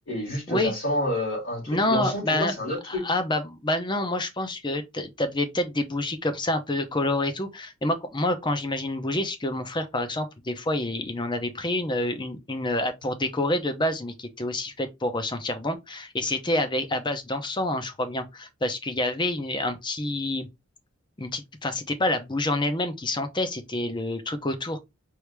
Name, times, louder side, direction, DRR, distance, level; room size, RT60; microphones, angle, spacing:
voice 1, 0.1-3.0, left 1 dB, 75° left, 2.9 m, -29 dB
voice 2, 1.7-2.5 2.9-20.5 21.2-24.8, left 1 dB, 25° left, 0.8 m, -28 dB
4.7 x 2.7 x 3.3 m
head